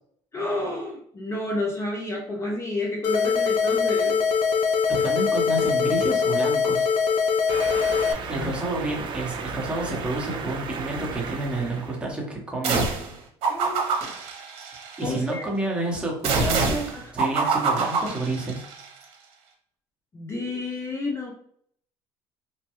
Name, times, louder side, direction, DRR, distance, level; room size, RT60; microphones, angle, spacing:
voice 1, 0.3-4.2 8.2-8.5 11.8-11.9 13.5-13.8 15.0-15.5 16.9-17.0 20.1-21.3, left 2 dB, 25° left, 0 dB, 0.5 m, -30 dB
sound 1, 3.0-8.1, left 5 dB, 75° left, 0.5 m, -22 dB
voice 2, 4.9-6.9 8.3-12.8 15.0-16.9 17.1-18.6, right 2 dB, 10° right, -2 dB, 0.9 m, -29 dB
sound 2, 7.5-12.1, right 4 dB, 45° right, 0.5 m, -34 dB
sound 3, 12.6-13.1 13.4-15.2 16.2-18.8, right 4 dB, 65° right, 0.8 m, -26 dB
3.1 x 2.2 x 3.0 m, 0.64 s
cardioid pair, 105°, 11 cm